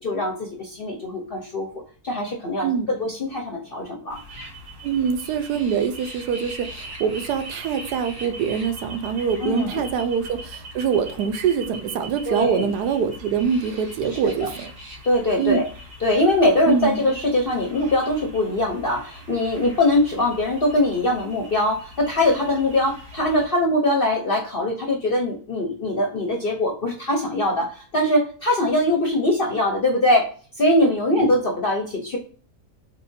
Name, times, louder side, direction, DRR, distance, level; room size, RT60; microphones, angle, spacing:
voice 1, 0.0-1.7 2.0-4.2 9.4-9.9 12.3-12.7 14.2-14.5 15.0-15.6 16.0-30.3 30.6-32.2, left 1 dB, 50° left, 1 dB, 0.6 m, -22 dB
voice 2, 2.6-2.9 4.8-14.7 15.4-15.6 16.7-17.0 30.8-30.9 31.2-31.3, right 7 dB, 75° right, 8 dB, 1.1 m, -24 dB
sound 1, 4.1-23.5, equal, 60° right, 2.1 m, -41 dB
4.1 x 3.7 x 2.6 m, 0.40 s
omnidirectional pair, 1.8 m